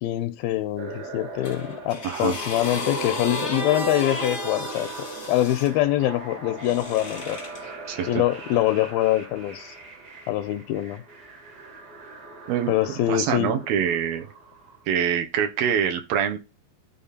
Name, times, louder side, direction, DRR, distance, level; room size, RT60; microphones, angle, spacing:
voice 1, 0.0-7.4 8.1-9.8 10.3-11.0 12.7-13.5, left 14 dB, 85° left, 2.4 m, -24 dB
sound 1, 0.8-14.8, right 3 dB, 40° right, 1.6 m, -38 dB
sound 2, 1.4-5.7 6.6-7.6 8.5-8.7, left 3 dB, 40° left, 0.9 m, -34 dB
voice 2, 2.0-2.4 7.9-8.1 12.5-12.7 13.1-14.3 14.9-16.4, right 8 dB, 75° right, 3.0 m, -24 dB
11.0 x 3.9 x 4.2 m
omnidirectional pair, 4.3 m